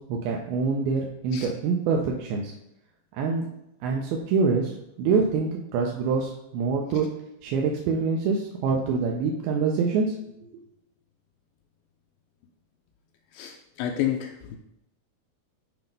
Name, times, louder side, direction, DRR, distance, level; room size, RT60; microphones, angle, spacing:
voice 1, 0.1-2.5 3.1-3.5 3.8-7.1 7.4-10.1 10.4-10.6, right 5 dB, 85° right, 0 dB, 2.5 m, -25 dB
voice 2, 13.3-14.6, left 11 dB, 85° left, 3 dB, 2.3 m, -30 dB
7.7 x 2.9 x 5.2 m, 0.81 s
omnidirectional pair, 4.3 m